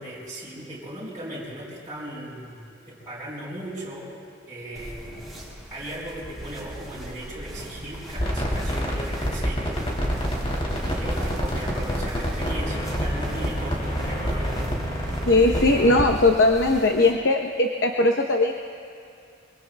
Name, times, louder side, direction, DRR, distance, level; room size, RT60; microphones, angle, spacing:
voice 1, 0.0-2.6 2.9-4.1 4.5-5.2 5.7-9.8 10.8-14.8 15.4-15.5, right 1 dB, 20° right, -10 dB, 3.9 m, -37 dB
sound 1, 4.7-17.1, equal, ahead, 4.1 m, -42 dB
sound 2, 6.2-15.8, right 2 dB, 65° right, 2.6 m, -42 dB
sound 3, 8.1-16.7, equal, 30° left, 2.7 m, -27 dB
voice 2, 15.3-18.5, left 2 dB, 60° left, 3 dB, 0.8 m, -19 dB
25.0 x 24.5 x 2.2 m, 2.5 s
head